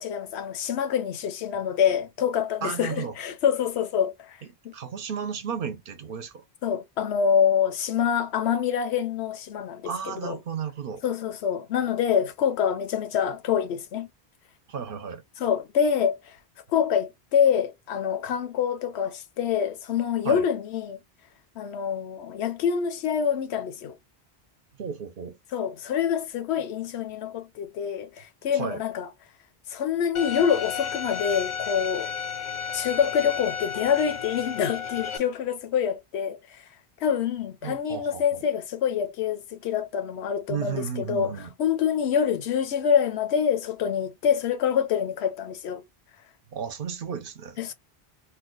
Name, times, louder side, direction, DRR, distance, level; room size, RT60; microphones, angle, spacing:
voice 1, 0.0-4.4 4.6-4.7 6.6-10.4 11.0-14.1 15.4-16.4 16.7-21.0 21.6-24.0 25.5-29.1 29.7-32.1 32.7-36.6 37.0-41.3 41.6-45.8 47.6-47.7, left 8 dB, 80° left, 0.9 m, -26 dB
voice 2, 2.6-3.2 4.7-6.4 9.8-11.0 14.7-15.2 20.2-20.4 24.8-25.4 28.5-28.8 37.6-38.4 40.5-41.5 46.5-47.6, right 7 dB, 60° right, 0.8 m, -33 dB
Bowed string instrument, 30.1-35.2, left 7 dB, 55° left, 0.6 m, -33 dB
2.7 x 2.2 x 3.7 m
omnidirectional pair, 1.1 m